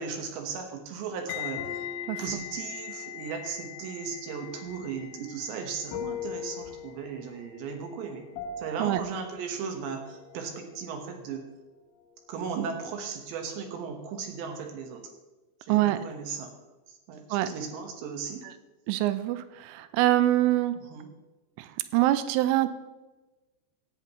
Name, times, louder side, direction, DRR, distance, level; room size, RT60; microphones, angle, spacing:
voice 1, 0.0-1.9 2.2-8.2 8.6-11.4 12.3-15.1 15.6-16.5 16.9-18.4 20.9-21.1, right 6 dB, 70° right, 4 dB, 3.3 m, -36 dB
sound 1, 1.3-10.3 10.5-10.8, left 14 dB, 85° left, 3.1 m, -43 dB
sound 2, 1.6-11.5 11.7-12.4, left 6 dB, 65° left, 2.8 m, -43 dB
voice 2, 15.7-16.0 17.3-17.5 18.4-18.5 18.9-20.8 21.6-22.7, right 15 dB, 85° right, 12 dB, 3.2 m, -25 dB
16.5 x 11.0 x 3.1 m, 1.1 s
omnidirectional pair, 5.7 m